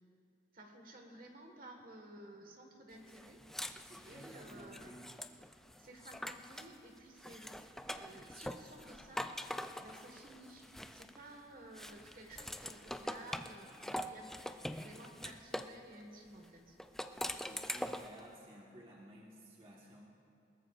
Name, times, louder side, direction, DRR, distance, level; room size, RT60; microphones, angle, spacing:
voice 1, 0.5-3.4 4.0-4.9 5.8-9.3 9.8-16.8, right 1 dB, 50° right, 2 dB, 1.6 m, -54 dB
sound 1, 3.1-6.8 7.2-11.3 11.8-15.8 16.8-18.2, equal, ahead, 0.3 m, -44 dB
voice 2, 3.9-5.0 17.3-20.1, right 1 dB, 30° right, -4 dB, 1.4 m, -55 dB
21.5 x 19.0 x 2.5 m, 2.6 s
head